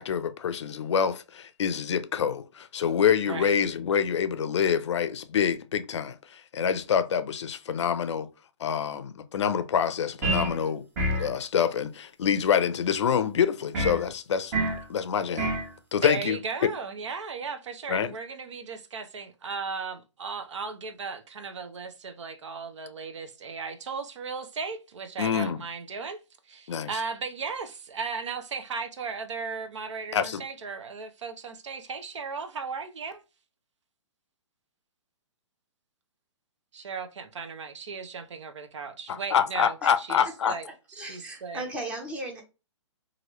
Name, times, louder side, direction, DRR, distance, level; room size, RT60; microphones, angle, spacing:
voice 1, 0.0-8.3 8.6-10.8 11.2-14.6 14.9-15.5 15.9-16.7 17.9-18.1 25.2-25.6 26.7-26.9 30.1-30.4 39.1-40.5, left 7 dB, 70° left, 0.5 m, -26 dB
sound 1, 10.2-10.6 11.0-11.3 13.7-14.0 14.5-14.8 15.4-15.7, right 1 dB, 30° right, 1.0 m, -27 dB
voice 2, 16.0-26.2 26.5-33.2 36.7-41.7, right 5 dB, 75° right, 0.7 m, -36 dB
voice 3, 40.4-42.4, right 1 dB, 10° right, 0.7 m, -37 dB
3.0 x 2.6 x 2.9 m
hypercardioid pair, 155°, 15 cm